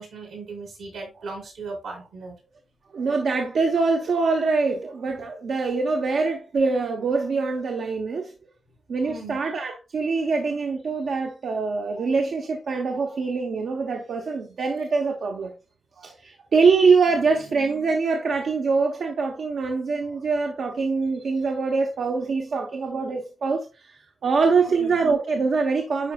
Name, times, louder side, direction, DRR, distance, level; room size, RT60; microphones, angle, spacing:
voice 1, 0.0-2.4 9.0-9.4 17.1-17.5 24.6-25.1, right 3 dB, 90° right, 4.2 m, -38 dB
voice 2, 2.9-8.3 8.9-15.5 16.0-26.1, right 4 dB, 70° right, 0.9 m, -24 dB
9.8 x 4.8 x 2.3 m
cardioid pair, 55°, 0 cm